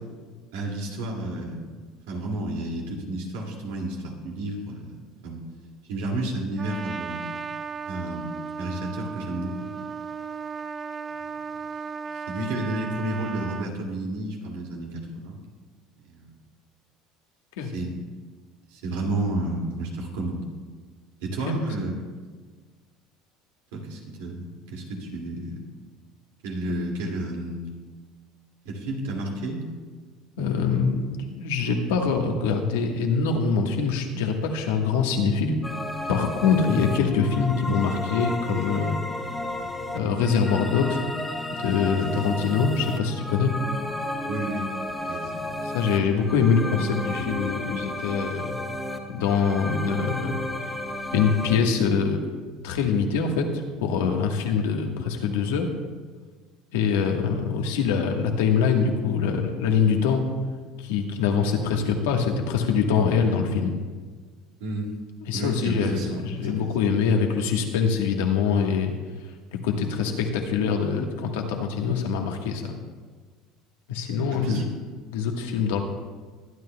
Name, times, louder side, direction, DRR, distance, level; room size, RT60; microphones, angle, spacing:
voice 1, 0.5-1.7 2.1-5.0 5.2-5.4 5.9-7.3 7.9-9.7 12.1-15.4 16.0-16.4 17.6-17.9 18.7-20.5 21.2-22.0 23.7-25.6 26.4-27.6 28.6-29.7 42.0-42.3 44.3-44.7 45.1-45.5 64.6-64.9 65.3-66.7 74.3-74.6, right 1 dB, 85° right, 0 dB, 2.3 m, -31 dB
Trumpet, 6.6-13.7, right 5 dB, 30° right, 0.3 m, -35 dB
voice 2, 30.4-35.5 36.1-39.0 39.9-41.0 41.6-43.5 45.6-48.5 49.1-50.4 51.1-52.2 52.6-55.7 56.7-60.2 60.8-63.7 65.3-68.9 69.5-72.8 73.9-74.6 75.1-75.8, left 6 dB, 90° left, 3 dB, 1.3 m, -24 dB
sound 1, 35.6-51.6, left 1 dB, 5° left, 1.3 m, -32 dB
21.0 x 9.4 x 2.3 m, 1.5 s
supercardioid pair, 100°, 0 cm